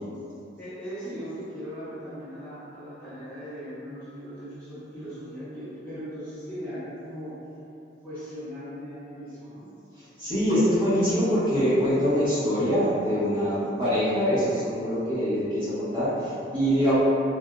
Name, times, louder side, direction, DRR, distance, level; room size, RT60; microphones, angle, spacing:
voice 1, 0.6-7.4 8.0-9.7, equal, 5° left, -18 dB, 0.9 m, -38 dB
voice 2, 10.2-16.9, equal, 30° right, -12 dB, 1.1 m, -24 dB
3.5 x 2.5 x 2.3 m, 2.7 s
head